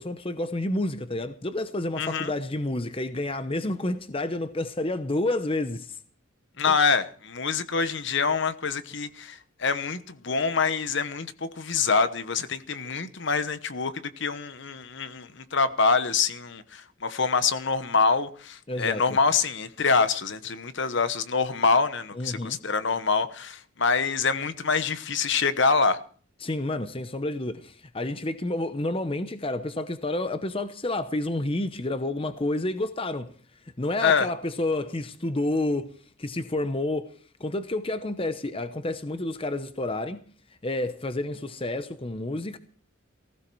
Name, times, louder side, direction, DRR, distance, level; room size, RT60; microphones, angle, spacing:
voice 1, 0.0-6.0 18.7-19.0 22.1-22.6 26.4-33.3 33.8-37.1 37.4-40.2 40.6-42.6, left 2 dB, 25° left, 0.8 m, -29 dB
voice 2, 2.0-2.3 6.6-26.0 34.0-34.3, left 5 dB, 55° left, 1.1 m, -25 dB
18.5 x 16.0 x 4.7 m
head